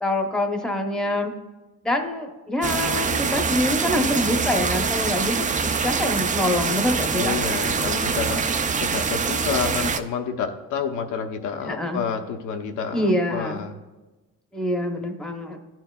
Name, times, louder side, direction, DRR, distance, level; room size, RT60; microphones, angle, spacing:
voice 1, 0.0-1.3 1.8-7.4 11.6-12.0 12.9-13.7 14.5-15.6, left 1 dB, ahead, 4 dB, 0.8 m, -25 dB
sound 1, 2.6-10.0, right 5 dB, 25° right, 0.3 m, -24 dB
voice 2, 7.1-8.4 8.8-13.7, left 6 dB, 80° left, 5 dB, 0.7 m, -29 dB
12.0 x 4.5 x 2.3 m, 1.1 s
cardioid pair, 90°, 30 cm